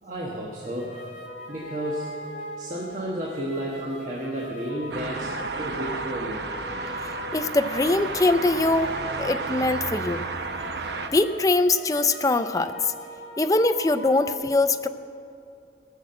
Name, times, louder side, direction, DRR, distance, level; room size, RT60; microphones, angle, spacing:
voice 1, 0.0-1.1 1.5-2.2 2.6-6.5, right 1 dB, 45° right, -3 dB, 1.3 m, -32 dB
sound 1, 0.6-14.3, left 1 dB, 80° left, 2.0 m, -40 dB
sound 2, 4.9-11.1, right 3 dB, 65° right, 0.8 m, -32 dB
voice 2, 7.3-8.9 9.2-10.2 11.1-12.9 13.4-14.9, left 2 dB, 20° left, 9 dB, 0.5 m, -22 dB
17.5 x 6.4 x 7.6 m, 2.7 s
head